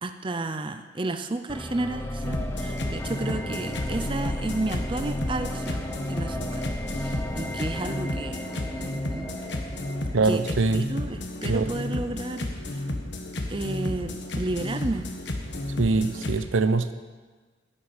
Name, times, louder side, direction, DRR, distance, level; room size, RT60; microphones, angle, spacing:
voice 1, 0.0-6.6 6.9-9.3 10.2-12.8 13.5-15.1, right 2 dB, 25° right, 8 dB, 0.5 m, -32 dB
sound 1, 1.5-10.5, equal, 10° left, 0.8 m, -34 dB
sound 2, 2.2-16.4, left 1 dB, 60° left, 1.3 m, -32 dB
voice 2, 10.1-10.9 11.4-11.7 15.8-16.9, right 3 dB, 90° right, 12 dB, 0.7 m, -23 dB
11.0 x 7.3 x 8.9 m, 1.4 s
head